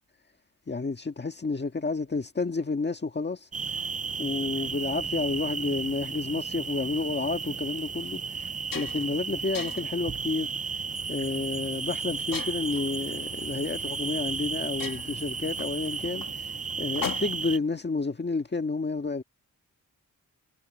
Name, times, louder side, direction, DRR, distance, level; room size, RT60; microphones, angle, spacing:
voice 1, 0.7-3.5 4.2-8.5 8.7-10.5 11.1-16.5 16.8-19.2, left 3 dB, 30° left, 1.8 m, -30 dB
sound 1, 3.5-17.6, right 5 dB, 25° right, 0.4 m, -34 dB
sound 2, 7.3-7.4 8.0-8.1 8.4-9.2 9.5-10.0 10.7-11.0 12.3-12.9 14.0-14.1 14.4-14.5 14.8-17.6, left 8 dB, 75° left, 1.6 m, -38 dB
sound 3, 10.9-16.1, equal, 5° left, 3.3 m, -47 dB
wide cardioid pair, 140°, 34 cm